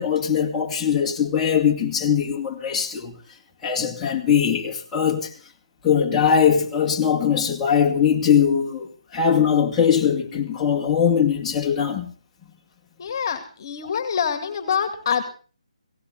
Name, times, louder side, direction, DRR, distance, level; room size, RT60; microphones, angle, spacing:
voice 1, 0.0-3.1 3.6-5.3 5.8-12.1, left 7 dB, 10° left, 2.4 m, -21 dB
voice 2, 13.0-15.2, left 7 dB, 40° left, 2.3 m, -25 dB
18.0 x 17.5 x 4.0 m
figure-of-eight pair, 155°, 3 cm